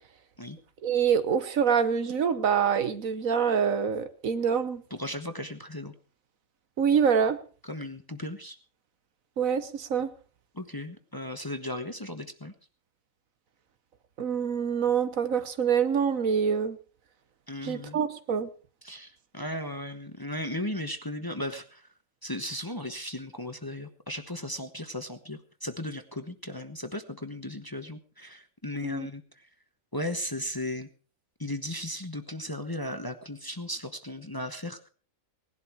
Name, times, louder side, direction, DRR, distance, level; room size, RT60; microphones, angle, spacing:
voice 1, 0.8-4.8 6.8-7.4 9.4-10.1 14.2-16.8 17.6-18.5 28.8-29.1, right 7 dB, 70° right, 11 dB, 1.5 m, -25 dB
voice 2, 4.9-5.9 7.6-8.6 10.5-12.5 17.5-18.0 18.8-21.9 22.2-29.5 29.9-30.9 31.4-34.9, left 1 dB, 15° left, 8 dB, 1.1 m, -36 dB
19.0 x 11.5 x 4.6 m, 0.39 s
omnidirectional pair, 1.5 m